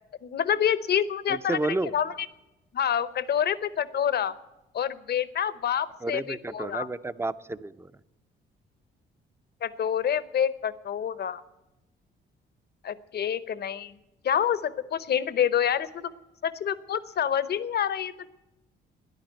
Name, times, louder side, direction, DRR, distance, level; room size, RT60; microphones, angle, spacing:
voice 1, 0.2-2.3 2.7-4.3 4.7-6.9 9.6-11.4 12.8-14.0 14.2-16.1 16.4-18.3, left 9 dB, 55° left, 16 dB, 0.8 m, -27 dB
voice 2, 1.3-1.9 6.0-7.9, right 2 dB, 10° right, 14 dB, 0.5 m, -31 dB
13.0 x 10.5 x 9.1 m, 0.99 s
cardioid pair, 90°, 20 cm